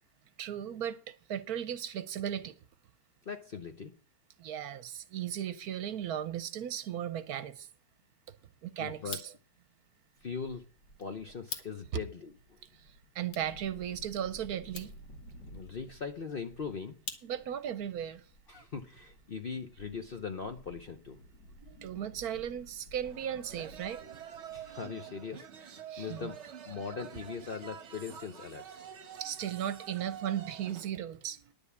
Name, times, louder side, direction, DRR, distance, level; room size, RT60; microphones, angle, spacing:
voice 1, 0.4-2.5 4.4-7.7 8.6-9.3 12.7-14.9 17.2-18.3 21.6-24.2 25.9-26.3 29.1-31.5, right 10 dB, 70° right, 1.1 m, -36 dB
voice 2, 3.3-3.9 8.8-9.2 10.2-10.6 11.0-12.6 15.5-17.0 18.5-21.2 24.5-26.4 26.7-28.9, left 5 dB, 50° left, 0.7 m, -40 dB
sound 1, 9.0-17.7, left 6 dB, 65° left, 1.7 m, -49 dB
sound 2, 10.2-24.9, right 1 dB, 85° left, 2.1 m, -55 dB
sound 3, 23.0-30.9, right 8 dB, 50° right, 1.1 m, -47 dB
10.5 x 5.4 x 8.2 m
omnidirectional pair, 1.8 m